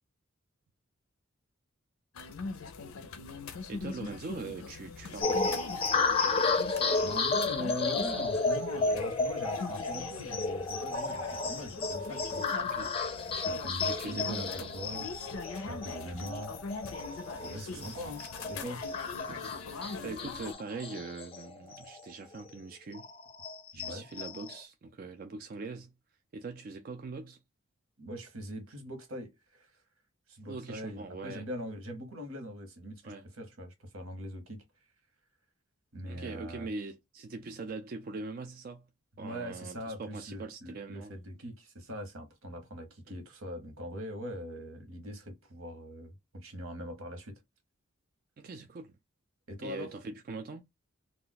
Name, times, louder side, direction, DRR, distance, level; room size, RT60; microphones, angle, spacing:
sound 1, 2.1-20.5, left 4 dB, 90° left, 0.5 m, -42 dB
voice 1, 3.7-5.7 12.6-12.9 13.8-15.0 17.4-17.9 19.3-23.1 23.7-25.9 26.3-27.4 30.5-31.5 33.0-33.3 36.0-38.9 39.2-41.1 43.1-43.2 48.4-48.9 49.6-50.6, right 3 dB, 45° right, 0.3 m, -42 dB
sound 2, 5.2-22.1 22.5-22.6 22.9-24.6, left 3 dB, 25° left, 0.5 m, -32 dB
voice 2, 7.0-12.7 13.3-16.5 17.4-18.9 23.7-24.1 28.0-29.7 30.3-34.6 35.9-36.7 39.2-47.4 49.5-49.9, equal, 85° right, 1.1 m, -42 dB
2.4 x 2.1 x 3.9 m
head